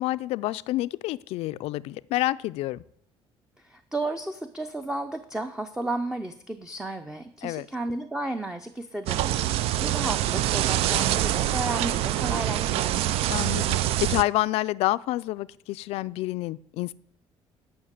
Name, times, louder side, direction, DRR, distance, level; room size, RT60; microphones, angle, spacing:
voice 1, 0.0-2.8 7.4-7.7 13.3-16.9, left 17 dB, 85° left, 0.4 m, -28 dB
voice 2, 3.6-13.1, right 2 dB, 5° right, 0.5 m, -33 dB
sound 1, 9.1-14.2, right 13 dB, 75° right, 0.4 m, -25 dB
12.5 x 5.8 x 8.1 m
cardioid pair, 165°, 10 cm